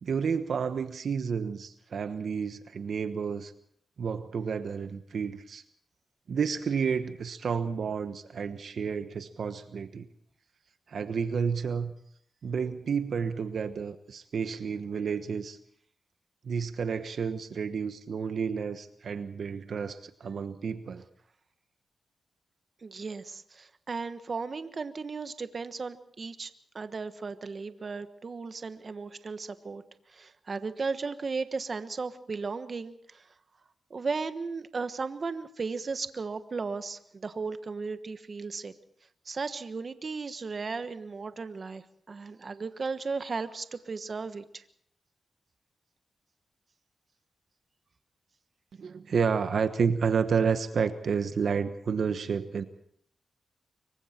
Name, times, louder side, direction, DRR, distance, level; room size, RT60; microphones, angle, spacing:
voice 1, 0.0-3.5 4.0-5.6 6.3-10.1 10.9-11.9 12.4-15.6 16.4-21.0 48.7-52.6, right 6 dB, 70° right, 10 dB, 1.2 m, -30 dB
voice 2, 22.8-29.8 30.1-33.3 33.9-38.7 39.2-44.6, right 4 dB, 50° right, 11 dB, 1.3 m, -35 dB
25.0 x 23.5 x 4.4 m, 0.65 s
cardioid pair, 75°, 0 cm